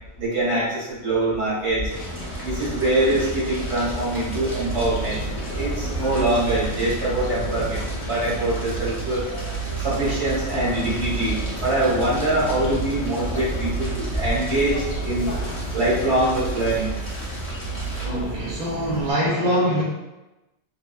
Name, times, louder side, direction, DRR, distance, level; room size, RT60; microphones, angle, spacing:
voice 1, 0.2-1.9 2.4-5.2 5.5-9.2 9.8-15.3 15.7-16.9, right 1 dB, 85° right, -8 dB, 1.4 m, -24 dB
Fire, 1.9-18.1, equal, 15° left, 0.6 m, -32 dB
sound 1, 4.2-19.1, right 4 dB, 60° left, 0.7 m, -32 dB
voice 2, 18.0-19.8, equal, 50° right, -6 dB, 0.9 m, -23 dB
2.8 x 2.2 x 2.3 m, 1.0 s
omnidirectional pair, 1.2 m